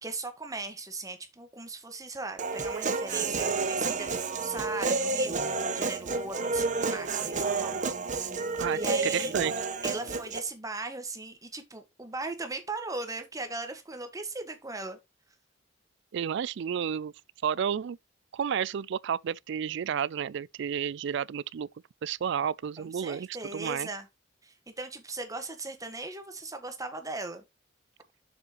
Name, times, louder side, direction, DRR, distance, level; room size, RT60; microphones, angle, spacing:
voice 1, 0.0-7.8 8.7-9.3 9.8-15.0 22.8-24.1 24.4-27.4, right 3 dB, 20° right, 1.5 m, -38 dB
Human voice, 2.4-10.4, right 4 dB, 40° right, 1.1 m, -30 dB
voice 2, 8.6-9.5 16.1-17.1 17.4-18.0 18.3-21.7 22.0-23.9, right 8 dB, 65° right, 0.4 m, -31 dB
7.2 x 6.7 x 3.0 m
head